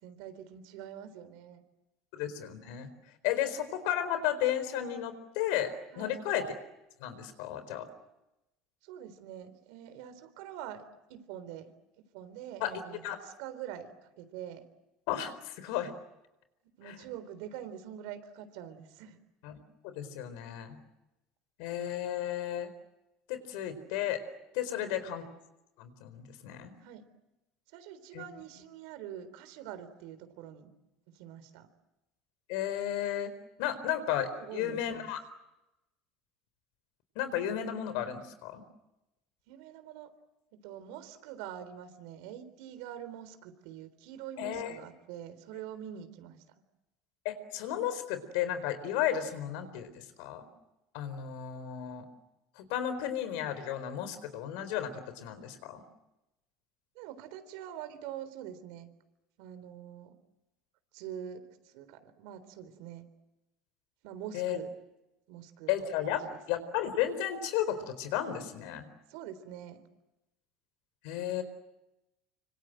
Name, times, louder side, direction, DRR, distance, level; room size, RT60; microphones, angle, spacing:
voice 1, 0.0-1.6 5.9-6.2 8.8-11.7 12.1-14.6 16.8-19.2 24.8-25.0 26.8-27.0 27.7-30.7 31.1-31.7 34.2-35.1 39.5-40.1 40.6-46.4 57.0-58.9 59.4-60.1 60.9-63.1 64.0-64.7 65.3-65.7 66.0-66.4 69.1-69.8, right 10 dB, 75° right, 11 dB, 3.7 m, -45 dB
voice 2, 2.1-2.9 3.2-6.4 7.0-7.9 12.6-13.2 15.1-15.9 16.8-17.0 19.4-19.5 19.8-20.8 21.6-22.7 23.3-24.2 24.5-25.2 25.8-26.7 28.1-28.2 32.5-33.3 33.6-35.2 37.2-38.6 44.4-44.7 47.2-50.5 50.9-52.0 52.6-55.8 64.3-64.6 65.7-68.9 71.0-71.4, left 10 dB, 75° left, 12 dB, 4.3 m, -33 dB
26.0 x 25.5 x 7.8 m, 0.95 s
cardioid pair, 130°, 0 cm